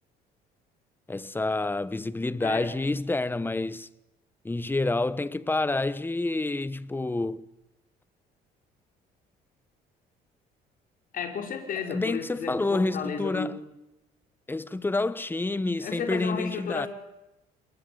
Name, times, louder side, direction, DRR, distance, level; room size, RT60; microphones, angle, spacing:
voice 1, 1.1-3.9 4.4-7.4 11.9-13.6 14.5-16.9, left 2 dB, 10° left, 1.2 m, -28 dB
voice 2, 11.1-13.5 15.8-16.9, left 6 dB, 55° left, 5.6 m, -33 dB
28.0 x 22.0 x 9.7 m
cardioid pair, 110°, 17 cm